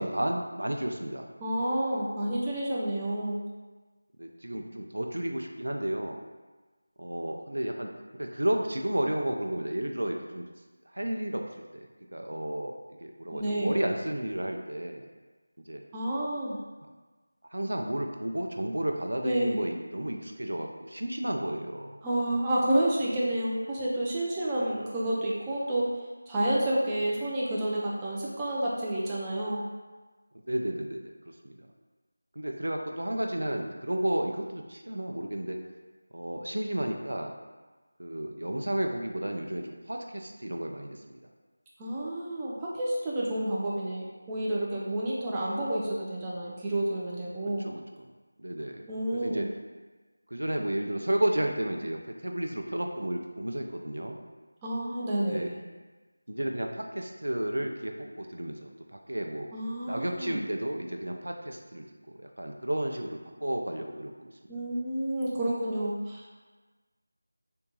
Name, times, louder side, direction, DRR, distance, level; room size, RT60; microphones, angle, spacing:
voice 1, 0.0-1.3 4.2-6.2 7.0-10.4 10.9-11.4 11.7-12.7 13.0-15.1 15.6-15.8 17.5-22.0 30.3-31.1 31.4-31.7 32.4-35.6 36.1-37.3 38.0-41.2 47.6-48.1 48.4-48.8 49.1-49.5 50.3-54.2 55.3-55.5 56.3-59.5 59.8-61.9 62.2-64.3, right 1 dB, 80° right, 3 dB, 0.4 m, -32 dB
voice 2, 1.4-3.4 13.3-13.8 15.9-16.6 19.2-19.6 22.0-25.9 26.3-29.6 41.8-47.7 48.9-49.5 54.6-55.5 59.5-60.4 64.5-66.5, right 1 dB, 10° right, -7 dB, 0.3 m, -30 dB
3.7 x 2.2 x 2.8 m, 1.3 s
figure-of-eight pair, 170°, 0 cm